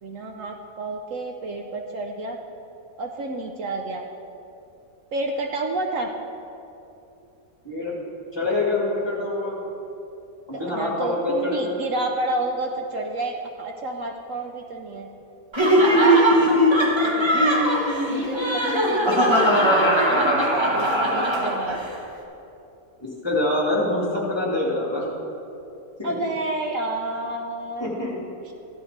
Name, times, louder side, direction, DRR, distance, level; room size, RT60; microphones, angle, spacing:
voice 1, 0.0-2.4 3.0-4.0 5.1-6.1 10.6-15.1 17.0-17.7 18.1-21.8 26.0-27.9, right 2 dB, 65° right, 2 dB, 1.0 m, -30 dB
voice 2, 8.3-9.6 10.5-11.8 15.9-16.3 23.0-25.1 26.0-26.1 27.8-28.1, left 2 dB, 15° left, -4 dB, 1.9 m, -25 dB
Laughter, 15.5-21.9, equal, 20° right, 1.1 m, -19 dB
14.5 x 11.5 x 3.3 m, 2.9 s
omnidirectional pair, 1.6 m